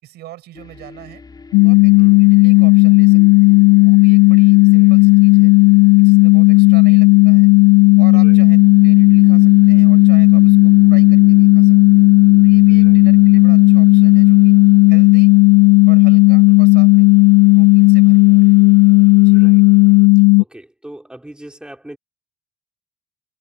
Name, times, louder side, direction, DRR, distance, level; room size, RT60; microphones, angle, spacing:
voice 1, 0.0-1.2 1.6-5.5 6.0-7.5 8.0-12.0 12.4-14.5 14.9-15.3 15.9-17.3 17.5-18.6 19.2-19.4, right 15 dB, 80° right, 6.9 m, -41 dB
sound 1, 0.5-20.1, left 4 dB, 25° left, 5.6 m, -43 dB
sound 2, 1.5-20.4, left 29 dB, 85° left, 0.5 m, -10 dB
voice 2, 2.0-2.3 4.7-5.0 8.1-8.4 12.8-13.0 16.5-16.6 19.3-19.6 20.2-22.0, right 1 dB, 5° right, 5.6 m, -40 dB
cardioid pair, 110°, 17 cm